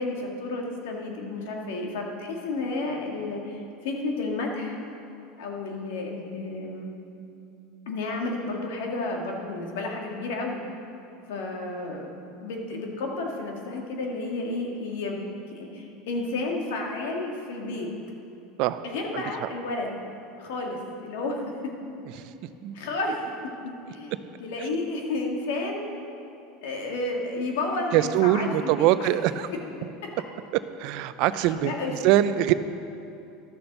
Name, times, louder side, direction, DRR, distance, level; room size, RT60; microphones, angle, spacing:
voice 1, 0.0-4.8 5.4-6.9 7.9-10.6 11.3-12.1 12.4-15.2 15.5-17.9 18.8-20.0 20.4-21.7 22.7-23.2 23.6-25.9 26.6-28.9 31.4-31.9, left 2 dB, 80° left, 1 dB, 1.9 m, -31 dB
voice 2, 27.9-29.5 30.8-32.5, right 13 dB, 60° right, 13 dB, 0.5 m, -23 dB
12.0 x 6.9 x 6.7 m, 2.7 s
supercardioid pair, 115°, 0 cm